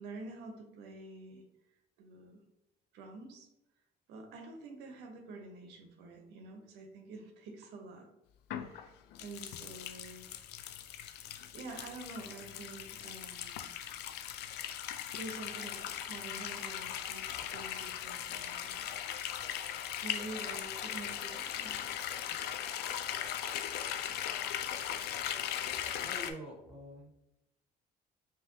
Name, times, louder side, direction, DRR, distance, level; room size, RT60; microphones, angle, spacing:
voice 1, 0.0-1.4 2.0-2.4 2.9-3.5 4.1-8.1 8.5-8.9 9.2-10.3 11.5-13.7 15.1-17.3 17.5-18.9 20.0-21.8, right 3 dB, 85° right, 3 dB, 0.8 m, -47 dB
sound 1, 8.5-26.3, left 10 dB, 75° left, 0.4 m, -39 dB
voice 2, 26.0-27.1, equal, 5° right, -2 dB, 1.2 m, -46 dB
5.5 x 2.8 x 2.7 m, 0.90 s
cardioid pair, 110°, 17 cm